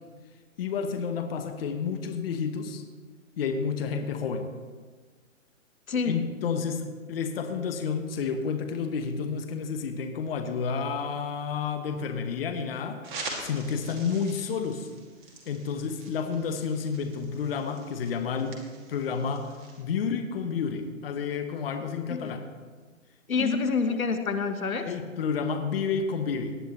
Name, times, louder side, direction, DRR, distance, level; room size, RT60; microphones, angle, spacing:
voice 1, 0.6-2.8 3.4-4.5 6.0-13.1 13.4-14.9 15.5-18.6 18.9-22.5 23.4-23.6 24.9-26.6, left 6 dB, 45° left, 7 dB, 1.0 m, -30 dB
voice 2, 5.9-6.2 22.1-22.2 23.3-24.9, left 4 dB, 80° left, 8 dB, 1.3 m, -27 dB
sound 1, 13.0-19.8, right 3 dB, 35° right, 2.5 m, -44 dB
18.0 x 10.5 x 3.1 m, 1.4 s
figure-of-eight pair, 140°, 41 cm